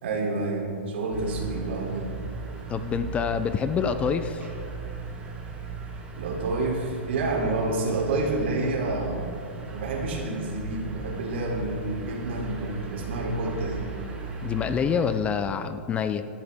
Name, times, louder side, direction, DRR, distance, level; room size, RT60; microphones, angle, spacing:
voice 1, 0.0-2.2 6.1-9.2 9.7-13.8, right 2 dB, 70° right, -1 dB, 3.3 m, -29 dB
sound 1, 1.1-15.2, right 5 dB, 20° right, 2.6 m, -37 dB
voice 2, 2.7-4.4 14.4-16.2, left 6 dB, 20° left, 10 dB, 0.5 m, -26 dB
16.5 x 12.0 x 3.7 m, 2.7 s
hypercardioid pair, 135°, 6 cm